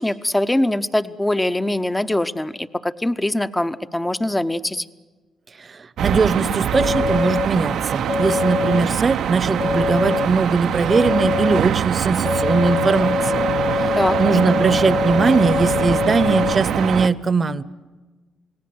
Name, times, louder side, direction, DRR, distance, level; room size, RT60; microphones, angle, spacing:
voice 1, 0.0-4.9 14.0-14.2, left 1 dB, 10° left, 12 dB, 0.8 m, -22 dB
voice 2, 5.7-13.5 13.7-17.6, right 4 dB, 35° right, 17 dB, 0.9 m, -20 dB
sound 1, 6.0-17.1, right 9 dB, 75° right, 0.7 m, -24 dB
sound 2, 6.7-7.5 8.1-8.8 9.6-10.3 10.9-11.6 12.2-16.5, left 5 dB, 40° left, 1.5 m, -23 dB
28.5 x 18.0 x 7.9 m, 1.3 s
cardioid pair, 90°, 0 cm